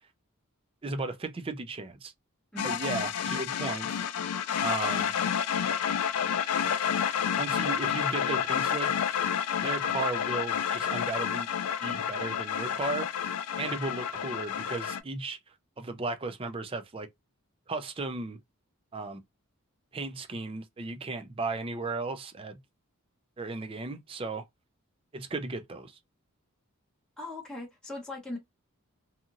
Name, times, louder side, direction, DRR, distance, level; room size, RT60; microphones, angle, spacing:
voice 1, 0.8-2.1 2.6-4.0 4.6-5.1 7.4-9.1 9.6-11.5 11.8-13.1 13.6-15.4 15.8-17.1 17.7-18.4 18.9-19.2 19.9-22.6 23.4-24.4 25.1-26.0, right 3 dB, 25° right, 0.4 m, -35 dB
sound 1, 2.6-15.0, left 8 dB, 80° left, 0.4 m, -30 dB
voice 2, 27.2-28.4, left 2 dB, 5° left, 1.0 m, -39 dB
2.8 x 2.6 x 2.5 m
head